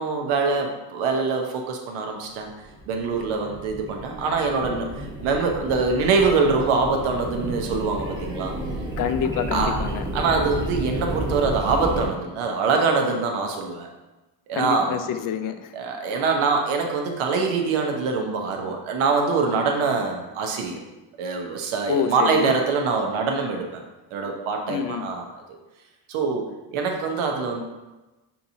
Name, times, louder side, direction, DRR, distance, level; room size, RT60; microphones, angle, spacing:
voice 1, 0.0-2.5 2.9-8.5 9.5-9.8 10.1-13.9 14.5-15.0 15.7-20.8 21.2-23.8 24.1-25.3 26.1-26.4 26.7-27.6, right 4 dB, 70° right, 2 dB, 0.9 m, -24 dB
sound 1, 2.5-12.1, right 1 dB, 10° right, 1.0 m, -32 dB
voice 2, 9.0-10.0 14.6-15.7 21.9-22.5 24.7-25.1, left 8 dB, 45° left, 9 dB, 0.5 m, -27 dB
5.6 x 2.8 x 2.7 m, 1.1 s
supercardioid pair, 65°, 50 cm